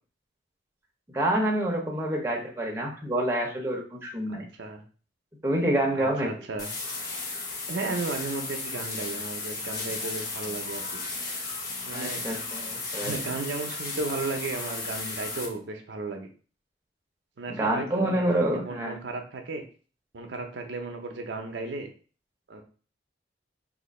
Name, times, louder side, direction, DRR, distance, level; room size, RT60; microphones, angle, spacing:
voice 1, 1.1-4.4 5.4-6.3 11.9-13.1 17.5-19.0, right 1 dB, 15° right, -1 dB, 0.7 m, -27 dB
voice 2, 4.3-4.8 5.9-6.7 7.7-11.0 11.9-12.2 13.0-16.3 17.4-19.6 20.1-21.9 22.5-22.6, right 3 dB, 80° right, 4 dB, 0.6 m, -34 dB
sound 1, 6.6-15.5, left 3 dB, 55° left, 0.8 m, -34 dB
2.8 x 2.5 x 4.1 m, 0.39 s
head